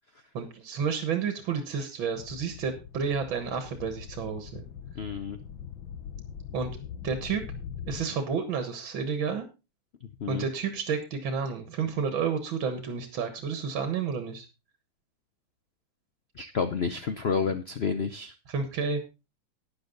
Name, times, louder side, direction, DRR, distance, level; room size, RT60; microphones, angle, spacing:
voice 1, 0.3-4.7 6.5-6.8 7.0-7.4 7.9-9.4 10.3-14.5 18.5-19.0, right 6 dB, 85° right, 8 dB, 2.2 m, -30 dB
sound 1, 2.2-8.1, left 8 dB, 80° left, 1.9 m, -42 dB
voice 2, 5.0-5.4 10.2-10.4 16.4-18.3, left 5 dB, 60° left, 9 dB, 0.6 m, -30 dB
11.5 x 9.7 x 3.9 m, 0.29 s
omnidirectional pair, 2.1 m